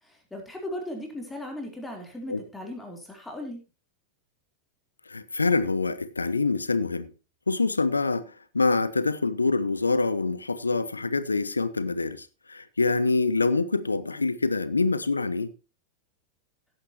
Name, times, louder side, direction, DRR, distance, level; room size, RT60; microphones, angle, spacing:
voice 1, 0.0-3.6, left 1 dB, 10° left, 3.7 m, -37 dB
voice 2, 5.1-7.1 7.5-15.5, left 3 dB, 80° left, 0.8 m, -25 dB
17.0 x 9.0 x 3.0 m
figure-of-eight pair, 90°, 0 cm